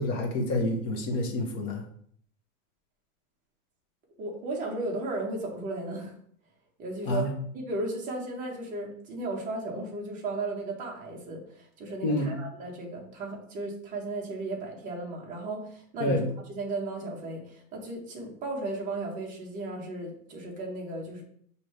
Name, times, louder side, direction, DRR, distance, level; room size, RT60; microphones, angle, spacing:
voice 1, 0.0-1.8 7.1-7.3 12.0-12.3 16.0-16.3, left 1 dB, 25° left, 3 dB, 0.4 m, -28 dB
voice 2, 4.2-6.1 6.8-7.3 7.5-21.2, right 2 dB, 20° right, -1 dB, 0.8 m, -35 dB
6.0 x 2.7 x 3.1 m, 0.63 s
supercardioid pair, 165°, 40 cm